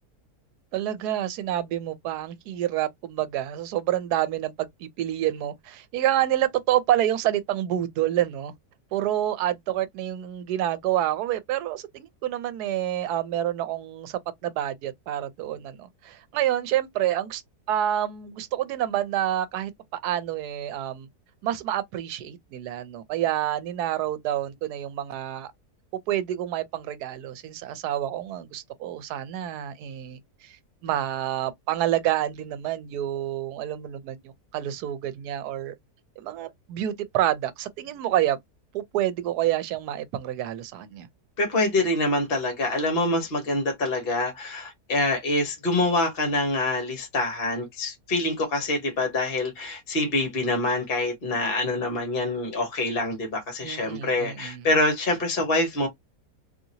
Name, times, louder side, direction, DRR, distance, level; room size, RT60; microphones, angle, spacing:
voice 1, 0.7-8.5 8.9-17.4 17.7-21.1 21.4-25.5 26.1-30.5 30.8-35.7 36.2-38.4 38.7-41.1 53.6-54.6, right 12 dB, 85° right, 1.1 m, -28 dB
voice 2, 41.4-55.9, left 2 dB, 40° left, 1.3 m, -25 dB
2.9 x 2.8 x 2.6 m
omnidirectional pair, 1.7 m